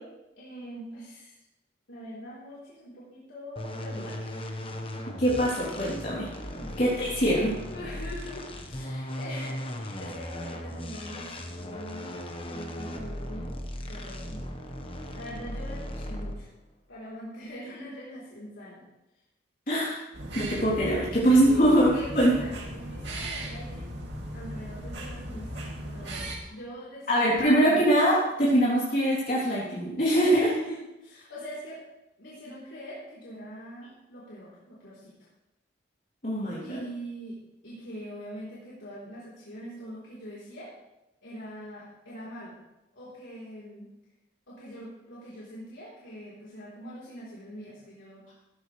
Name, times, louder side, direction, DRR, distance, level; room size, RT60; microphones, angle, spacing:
voice 1, 0.4-1.4 1.9-4.5 6.5-7.2 7.7-12.1 12.5-13.6 13.9-14.4 15.0-16.5 16.9-18.8 21.4-23.9 24.3-27.5 30.3-31.8 32.2-35.3 36.6-37.4 37.6-40.7 41.2-42.6 42.9-43.9 44.5-48.2, equal, 80° left, -8 dB, 3.9 m, -43 dB
sound 1, 3.6-16.5, left 1 dB, 30° left, 1.3 m, -37 dB
voice 2, 5.2-6.3 6.8-7.5 19.7-20.0 20.3-21.9 22.1-22.3 27.1-30.5 36.2-36.8, right 1 dB, 45° left, -8 dB, 3.4 m, -23 dB
sound 2, 20.1-26.4, right 1 dB, 65° right, 2.7 m, -37 dB
17.0 x 14.0 x 3.4 m, 0.94 s
head